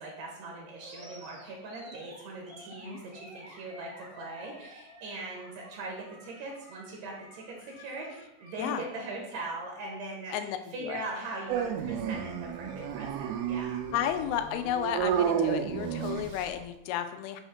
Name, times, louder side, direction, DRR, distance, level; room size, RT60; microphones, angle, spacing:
voice 1, 0.0-13.8, right 2 dB, 70° right, -2 dB, 1.6 m, -40 dB
Animal, 0.8-8.9, equal, 50° right, 0.6 m, -51 dB
voice 2, 10.3-11.0 13.9-17.4, left 10 dB, 85° left, 8 dB, 2.4 m, -33 dB
Dog, 11.5-16.6, right 8 dB, 85° right, 2.5 m, -31 dB
6.3 x 2.9 x 5.6 m, 0.86 s
omnidirectional pair, 4.3 m